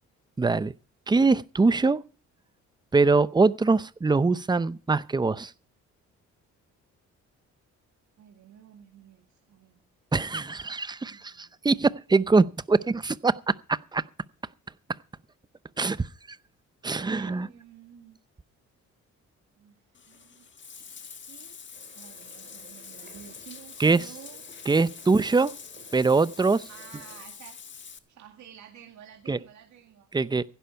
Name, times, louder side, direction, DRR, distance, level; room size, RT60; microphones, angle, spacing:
voice 1, 0.4-0.7 1.1-2.0 2.9-5.5 10.1-13.4 13.9-14.0 15.8-16.1 16.8-17.5 23.8-24.1 24.7-25.5 25.9-26.7 29.3-29.4 30.1-30.4, right 3 dB, 15° right, 0.6 m, -23 dB
voice 2, 8.2-9.8 11.0-11.5 16.9-18.2 19.6-20.5 21.3-21.6 22.0-24.9 26.7-27.6 28.1-30.1, right 9 dB, 70° right, 2.1 m, -51 dB
Bathtub (filling or washing), 19.9-28.0, left 6 dB, 40° left, 1.5 m, -45 dB
sound 1, 21.7-27.3, right 4 dB, 35° right, 3.9 m, -55 dB
16.0 x 11.5 x 4.5 m
cardioid pair, 90°, 30 cm